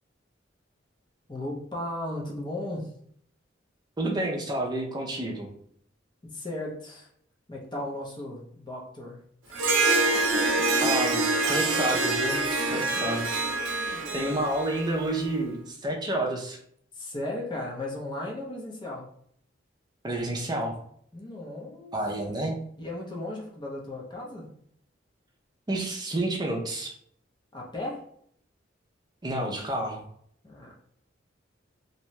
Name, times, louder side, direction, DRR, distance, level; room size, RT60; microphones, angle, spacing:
voice 1, 1.3-2.9 6.2-7.1 7.5-9.2 10.3-10.4 13.5-14.4 17.0-19.1 21.1-22.0 22.8-24.5 27.5-28.0 30.4-30.7, left 1 dB, 25° left, -2 dB, 0.6 m, -36 dB
voice 2, 4.0-5.5 10.8-16.6 20.0-20.8 21.9-22.6 25.7-26.9 29.2-30.0, right 1 dB, 20° right, 0 dB, 0.5 m, -30 dB
Harp, 9.5-15.2, right 2 dB, 80° right, 0.6 m, -26 dB
2.6 x 2.2 x 3.0 m, 0.66 s
head